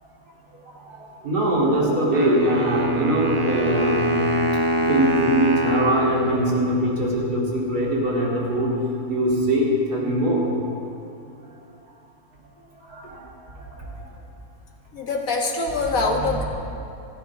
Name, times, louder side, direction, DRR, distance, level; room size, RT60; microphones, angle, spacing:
voice 1, 0.7-4.1 4.8-8.7 9.1-10.5 12.8-13.3 13.6-13.9 16.1-16.2, right 1 dB, 85° right, -5 dB, 3.7 m, -22 dB
Wind instrument woodwind instrument, 2.1-7.1, right 1 dB, 35° right, 0.5 m, -24 dB
voice 2, 14.9-16.4, left 3 dB, 65° left, 1 dB, 1.9 m, -24 dB
28.5 x 10.5 x 3.6 m, 2.7 s
omnidirectional pair, 1.6 m